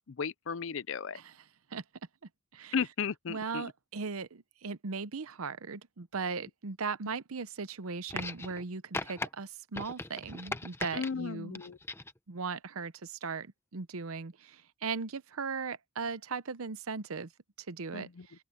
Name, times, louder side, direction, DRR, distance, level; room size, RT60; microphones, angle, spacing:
voice 1, 0.1-1.2 2.7-3.6 10.9-11.8 17.9-18.3, left 6 dB, 60° left, 0.5 m, -35 dB
voice 2, 3.3-11.6 12.3-17.3 17.7-18.1, right 4 dB, 80° right, 0.8 m, -38 dB
sound 1, 8.1-8.6 8.9-9.3 9.7-11.1 11.6-12.2 13.2-13.3, left 2 dB, 10° left, 0.8 m, -38 dB
open air
head